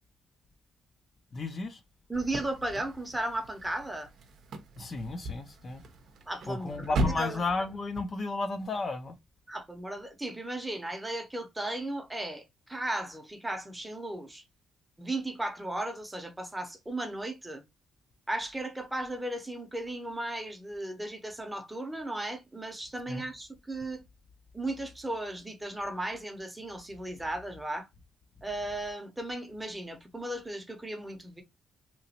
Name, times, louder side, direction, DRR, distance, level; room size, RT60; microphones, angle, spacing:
voice 1, 1.3-1.8 4.8-5.8 6.5-9.2 23.1-23.2, left 3 dB, 40° left, 0.5 m, -33 dB
voice 2, 2.1-4.1 6.3-7.4 9.5-14.4 15.0-17.6 18.3-24.0 24.5-27.9 28.4-31.4, right 1 dB, 10° right, 0.8 m, -36 dB
sound 1, 2.1-8.0, right 1 dB, 65° right, 0.6 m, -37 dB
2.9 x 2.4 x 2.8 m
cardioid pair, 90°, 0 cm